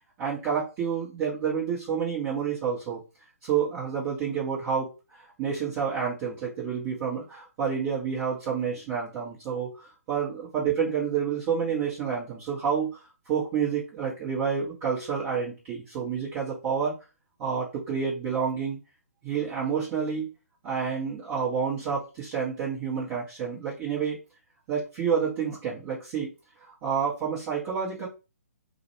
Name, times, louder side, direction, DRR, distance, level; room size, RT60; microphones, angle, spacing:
voice 1, 0.2-3.0 3.4-4.9 5.4-13.0 13.3-17.0 17.4-18.8 19.2-20.3 20.6-24.2 24.7-26.3 26.6-28.1, right 7 dB, 25° right, -8 dB, 0.8 m, -29 dB
2.4 x 2.1 x 2.9 m, 0.30 s
figure-of-eight pair, 135°, 9 cm